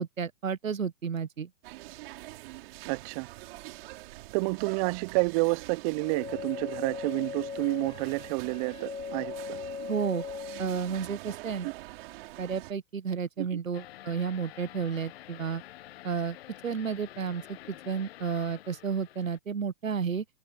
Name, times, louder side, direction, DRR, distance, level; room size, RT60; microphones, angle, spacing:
voice 1, 0.0-1.5 9.9-10.2 10.6-11.7 12.4-15.6 16.0-16.4 16.6-20.2, right 6 dB, 80° right, 1.4 m, -32 dB
sound 1, 1.6-12.7, right 19 dB, 45° right, 5.7 m, -45 dB
voice 2, 2.8-3.3 4.3-9.6 11.6-11.7 13.4-13.5, right 29 dB, 30° right, 0.6 m, -29 dB
sound 2, 5.9-10.8, left 6 dB, 90° left, 1.2 m, -39 dB
sound 3, 13.7-19.4, left 14 dB, 50° left, 1.0 m, -49 dB
figure-of-eight pair, 115°, 39 cm